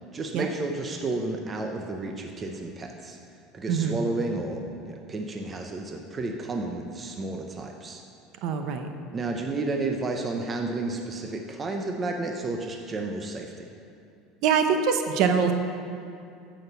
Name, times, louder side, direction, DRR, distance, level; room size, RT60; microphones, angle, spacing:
voice 1, 0.1-3.2 3.5-8.0 9.1-13.5, right 2 dB, 20° right, 2 dB, 0.6 m, -31 dB
voice 2, 3.7-4.0 8.4-8.9 14.4-15.5, right 6 dB, 50° right, 6 dB, 0.8 m, -23 dB
9.5 x 6.4 x 8.1 m, 2.5 s
cardioid pair, 170°, 0 cm